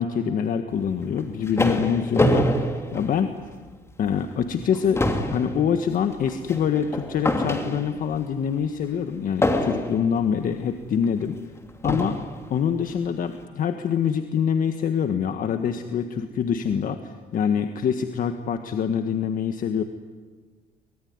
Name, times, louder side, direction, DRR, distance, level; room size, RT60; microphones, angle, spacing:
voice 1, 0.0-3.3 4.0-11.4 11.8-12.2 12.5-19.8, left 7 dB, 55° left, 7 dB, 1.6 m, -25 dB
sound 1, 1.0-3.7 4.1-4.3 4.6-8.2 9.4-10.2 11.0-11.1 11.8-12.4, left 1 dB, 15° left, 2.9 m, -25 dB
24.5 x 23.0 x 9.6 m, 1.5 s
cardioid pair, 110°, 17 cm